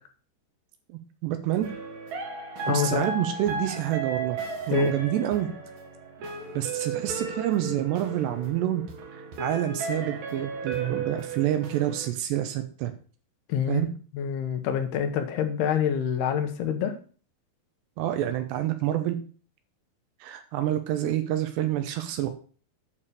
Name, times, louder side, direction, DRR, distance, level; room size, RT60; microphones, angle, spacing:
voice 1, 1.2-1.7 2.7-4.4 4.7-5.5 6.5-8.8 9.4-12.9 13.7-13.9 18.0-19.2 20.2-22.3, right 12 dB, 85° right, 7 dB, 3.1 m, -27 dB
sound 1, 1.6-12.1, right 4 dB, 60° right, 2.9 m, -35 dB
voice 2, 2.7-3.1 4.7-4.9 13.5-13.8 14.1-17.0, left 8 dB, 75° left, 7 dB, 2.9 m, -26 dB
8.9 x 5.6 x 6.9 m, 0.40 s
omnidirectional pair, 4.8 m